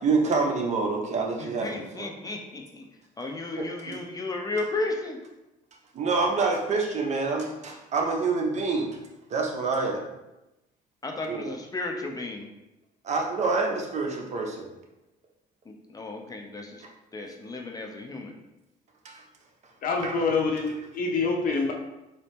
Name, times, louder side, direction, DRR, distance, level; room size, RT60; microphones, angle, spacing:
voice 1, 0.0-2.1 3.6-4.0 5.9-9.0 9.3-10.0 11.3-11.5 13.0-14.7 19.0-19.2 20.0-20.2, right 4 dB, 45° right, 1 dB, 0.7 m, -27 dB
voice 2, 1.4-2.8 3.2-5.2 11.0-12.5 15.7-16.8 17.1-18.3, left 2 dB, 20° left, 2 dB, 0.6 m, -34 dB
voice 3, 19.8-21.7, left 4 dB, 55° left, 2 dB, 0.7 m, -26 dB
3.9 x 2.7 x 3.5 m, 0.96 s
cardioid pair, 110°, 17 cm